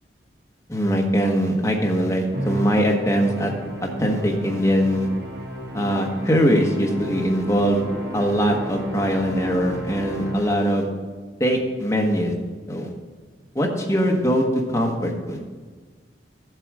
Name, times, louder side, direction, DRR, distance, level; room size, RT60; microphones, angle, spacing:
voice 1, 0.7-3.5 3.8-5.1 5.7-7.8 8.1-10.9 11.4-12.3 12.7-12.9 13.5-15.4, equal, 15° left, 0 dB, 1.3 m, -21 dB
Musical instrument, 2.3-10.9, equal, 60° right, 2.0 m, -34 dB
14.5 x 7.8 x 4.9 m, 1.4 s
head